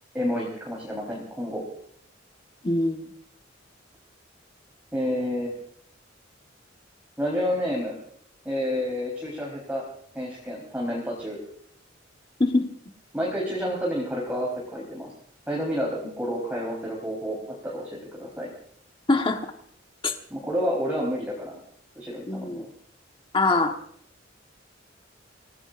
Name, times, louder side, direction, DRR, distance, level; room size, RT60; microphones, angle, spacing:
voice 1, 0.1-1.6 4.9-5.5 7.2-8.0 8.4-9.9 10.1-11.4 13.1-15.1 15.5-18.5 20.3-21.6 22.0-22.7, equal, 10° right, -4 dB, 4.0 m, -29 dB
voice 2, 2.6-3.0 12.4-12.7 19.1-19.4 20.0-20.1 22.3-22.6 23.3-23.7, left 2 dB, 25° left, 4 dB, 1.3 m, -23 dB
28.0 x 17.5 x 2.6 m, 0.65 s
head